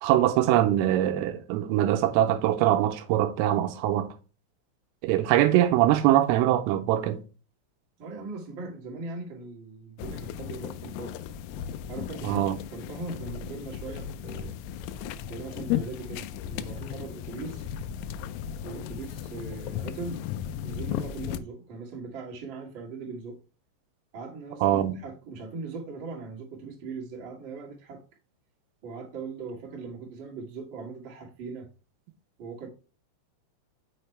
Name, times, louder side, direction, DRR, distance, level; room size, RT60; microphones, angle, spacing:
voice 1, 0.0-4.1 5.0-7.2 12.2-12.6 24.6-25.0, right 13 dB, 85° right, 3.2 m, -23 dB
voice 2, 8.0-11.2 11.9-14.6 15.3-17.7 18.6-20.2 20.6-23.4 24.1-28.0 28.8-31.7 32.4-32.7, right 4 dB, 60° right, 1.2 m, -40 dB
sound 1, 10.0-21.4, left 10 dB, 90° left, 3.3 m, -35 dB
6.5 x 6.1 x 3.3 m
omnidirectional pair, 6.0 m